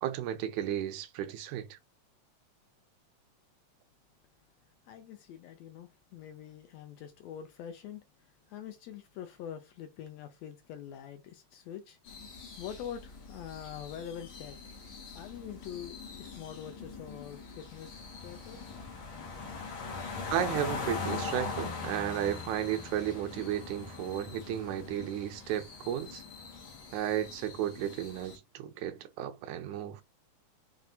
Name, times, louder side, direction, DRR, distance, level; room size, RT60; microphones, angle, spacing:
voice 1, 0.0-1.8 20.3-26.2 26.9-30.0, right 11 dB, 85° right, 2.0 m, -34 dB
voice 2, 4.9-12.0 12.6-14.6 15.1-18.6, left 9 dB, 75° left, 1.6 m, -45 dB
sound 1, 12.1-28.4, left 4 dB, 55° left, 1.5 m, -42 dB
5.9 x 2.4 x 2.7 m
omnidirectional pair, 3.4 m